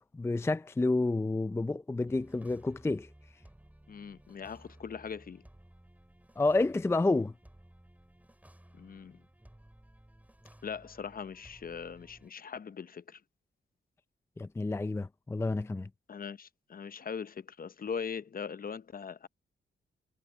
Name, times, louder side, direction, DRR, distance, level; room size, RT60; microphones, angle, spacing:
voice 1, 0.1-3.1 6.4-7.3 14.4-15.9, left 2 dB, 15° left, 0.4 m, -29 dB
sound 1, 2.0-12.3, right 1 dB, 5° right, 4.9 m, -58 dB
voice 2, 3.9-5.4 8.7-9.2 10.6-13.2 16.1-19.3, left 6 dB, 45° left, 0.7 m, -40 dB
cardioid pair, 85°, 20 cm